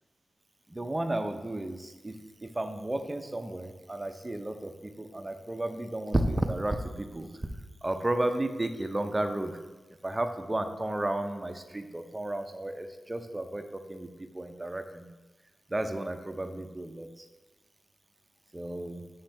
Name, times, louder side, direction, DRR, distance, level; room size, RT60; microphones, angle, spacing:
voice 1, 0.7-2.2 2.4-7.3 7.8-9.6 10.0-15.1 15.7-17.2 18.5-19.0, right 1 dB, 20° right, 7 dB, 0.6 m, -33 dB
7.0 x 3.3 x 5.8 m, 1.2 s
wide cardioid pair, 90°, 0 cm